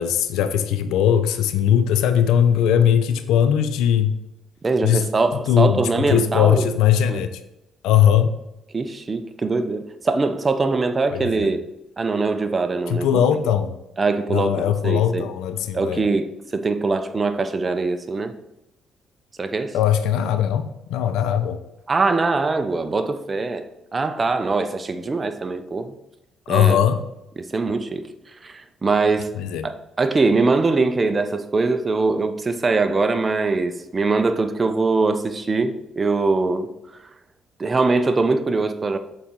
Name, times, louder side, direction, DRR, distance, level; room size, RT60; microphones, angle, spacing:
voice 1, 0.0-4.1 4.8-5.0 5.5-5.8 6.1-7.3 7.8-8.3 11.1-11.5 12.9-13.7 14.3-16.0 19.7-21.6 26.5-27.0 29.4-29.7, left 9 dB, 85° left, 0.6 m, -19 dB
voice 2, 4.6-6.7 7.1-7.2 8.7-11.6 12.0-13.2 14.0-15.3 15.7-18.3 19.4-19.8 21.9-25.9 26.5-26.8 27.4-28.1 28.4-29.3 29.6-36.7 37.6-39.0, right 3 dB, 30° right, 0.7 m, -22 dB
6.8 x 4.2 x 3.8 m
supercardioid pair, 70°, 0 cm